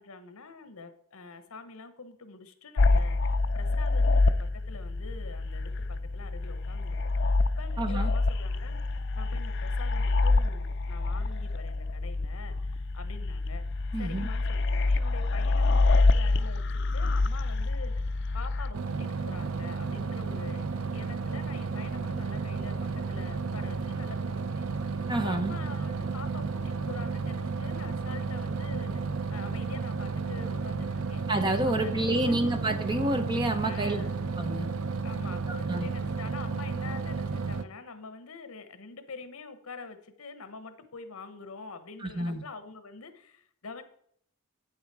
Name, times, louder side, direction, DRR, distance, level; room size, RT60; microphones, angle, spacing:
voice 1, 0.0-8.8 9.1-13.6 14.0-20.7 20.9-22.8 23.1-24.7 25.2-28.9 29.3-31.2 31.8-32.5 33.6-34.2 35.0-43.8, left 4 dB, 75° left, 10 dB, 1.0 m, -45 dB
sound 1, 2.8-18.7, left 3 dB, 55° left, 0.5 m, -27 dB
voice 2, 7.8-8.1 13.9-14.3 25.1-25.5 31.3-34.0 34.4-34.7 35.5-35.9 42.0-42.4, right 1 dB, 20° right, 7 dB, 0.8 m, -29 dB
sound 2, 18.7-37.6, right 4 dB, 70° right, 0.6 m, -32 dB
8.7 x 7.2 x 4.7 m, 0.66 s
head